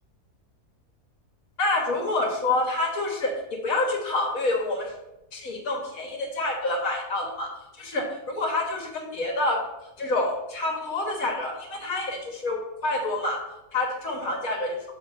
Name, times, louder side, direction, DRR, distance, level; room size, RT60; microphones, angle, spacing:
voice 1, 1.6-3.3 3.6-4.9 5.3-7.5 7.8-9.6 10.0-13.4 13.7-14.8, left 2 dB, 60° left, 1 dB, 1.9 m, -27 dB
8.5 x 3.6 x 6.8 m, 0.96 s
omnidirectional pair, 1.7 m